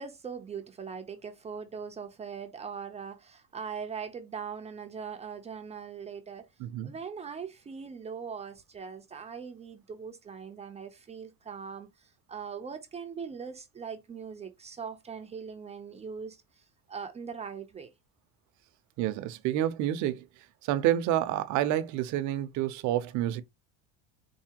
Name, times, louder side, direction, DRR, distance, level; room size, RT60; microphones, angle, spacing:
voice 1, 0.0-6.5 6.8-17.9, right 6 dB, 20° right, 0.6 m, -41 dB
voice 2, 6.6-6.9 19.0-20.3 20.6-23.4, right 12 dB, 60° right, 0.7 m, -28 dB
4.7 x 2.7 x 2.8 m
cardioid pair, 145°, 32 cm